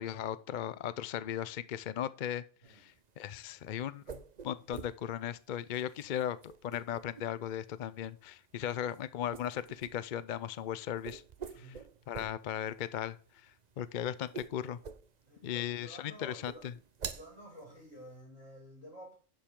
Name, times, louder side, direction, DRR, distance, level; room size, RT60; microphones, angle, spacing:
voice 1, 0.0-6.4 6.6-11.2 11.6-11.7 12.1-13.2 13.8-14.8 15.4-16.7, left 10 dB, 55° left, 0.5 m, -37 dB
sound 1, 2.6-18.2, right 6 dB, 40° right, 0.7 m, -49 dB
voice 2, 11.5-11.8 15.3-16.6 17.1-19.1, equal, 75° left, 6.9 m, -51 dB
11.5 x 7.2 x 3.7 m
omnidirectional pair, 1.3 m